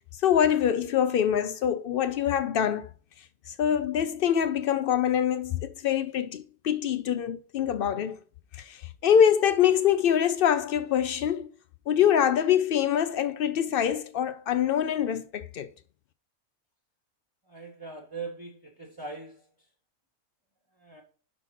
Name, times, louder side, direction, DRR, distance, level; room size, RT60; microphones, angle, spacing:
voice 1, 0.2-2.9 3.5-8.2 8.5-11.5 11.9-15.7, left 9 dB, 85° left, 0.5 m, -24 dB
voice 2, 17.5-19.4 20.8-21.0, right 4 dB, 15° right, 1.1 m, -40 dB
5.9 x 4.3 x 5.7 m
omnidirectional pair, 1.5 m